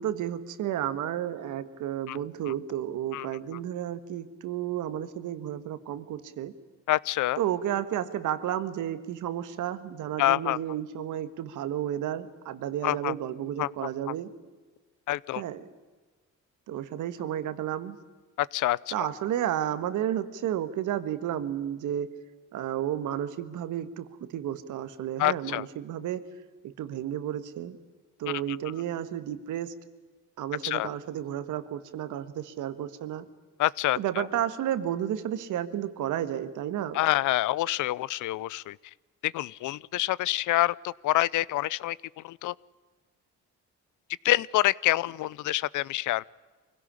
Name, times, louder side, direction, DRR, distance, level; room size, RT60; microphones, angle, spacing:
voice 1, 0.0-6.5 7.4-14.3 15.3-15.7 16.7-18.0 18.9-22.1 22.5-26.2 26.6-27.8 28.2-29.7 30.4-33.3 34.0-37.0, right 11 dB, 80° right, 12 dB, 1.7 m, -32 dB
voice 2, 6.9-7.4 10.2-10.6 12.8-13.1 13.6-13.7 15.1-15.4 18.4-18.9 25.2-25.6 28.3-28.4 30.6-30.9 33.6-34.2 36.9-38.8 39.2-42.5 44.2-46.3, left 16 dB, 80° left, 23 dB, 0.6 m, -27 dB
24.0 x 17.0 x 10.0 m, 1.4 s
cardioid pair, 90°, 30 cm